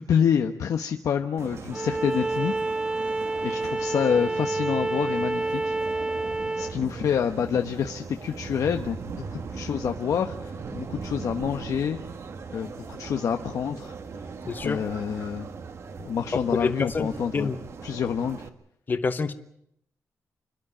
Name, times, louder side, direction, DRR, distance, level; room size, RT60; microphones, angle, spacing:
voice 1, 0.0-2.5 3.4-5.7 6.6-12.0 12.5-13.9 14.6-15.5 16.0-17.5 17.8-18.5, left 7 dB, 80° left, 5 dB, 1.1 m, -27 dB
sound 1, 1.4-18.5, right 5 dB, 55° right, 1.6 m, -39 dB
Bowed string instrument, 1.7-6.8, right 2 dB, 15° right, 0.9 m, -28 dB
voice 2, 14.5-14.8 16.6-17.6 18.9-19.3, left 4 dB, 35° left, 10 dB, 1.1 m, -27 dB
27.5 x 12.0 x 9.9 m, 0.75 s
wide cardioid pair, 140°, 6 cm